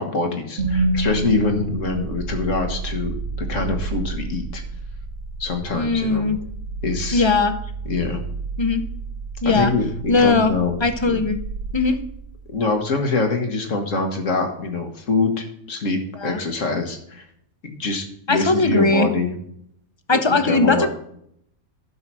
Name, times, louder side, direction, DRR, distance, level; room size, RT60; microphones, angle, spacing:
voice 1, 0.0-4.6 5.4-6.3 6.8-7.2 7.9-8.2 9.5-10.8 11.1-11.2 12.5-17.2 17.6-19.3 20.1-20.9, left 3 dB, 60° left, 5 dB, 1.7 m, -24 dB
sound 1, 0.6-12.7, right 2 dB, 60° right, 1.5 m, -29 dB
voice 2, 5.7-6.4 7.1-7.5 8.6-8.8 9.4-9.7 10.1-10.5 10.8-11.4 11.7-12.0 16.2-16.4 18.3-19.1 20.1-20.9, left 3 dB, 35° left, 9 dB, 0.4 m, -19 dB
11.0 x 5.8 x 6.1 m, 0.71 s
omnidirectional pair, 1.5 m